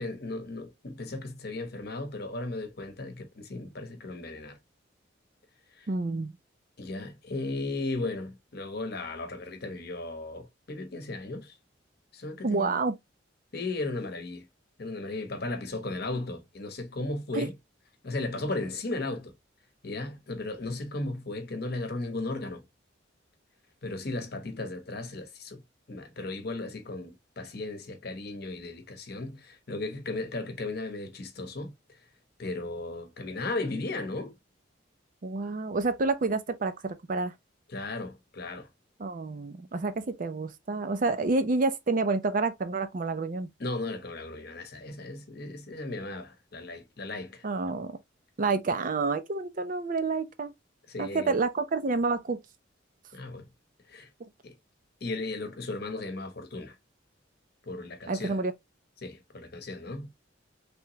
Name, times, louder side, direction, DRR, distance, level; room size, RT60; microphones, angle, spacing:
voice 1, 0.0-4.6 5.8-5.9 6.8-11.6 12.1-12.8 13.5-14.5 14.8-17.5 18.0-19.3 19.8-22.6 23.8-25.6 25.9-31.7 32.4-34.3 37.7-38.7 43.6-47.5 50.9-51.4 53.1-53.5 53.9-54.1 54.4-54.5 55.0-56.7 57.6-58.4 59.0-60.1, left 2 dB, 55° left, 0.9 m, -36 dB
voice 2, 5.9-6.3 12.4-13.0 17.3-17.5 35.2-37.3 39.0-43.5 47.4-48.0 48.4-50.5 51.0-52.4 58.1-58.5, right 3 dB, 45° right, 0.5 m, -29 dB
3.4 x 2.9 x 2.8 m
head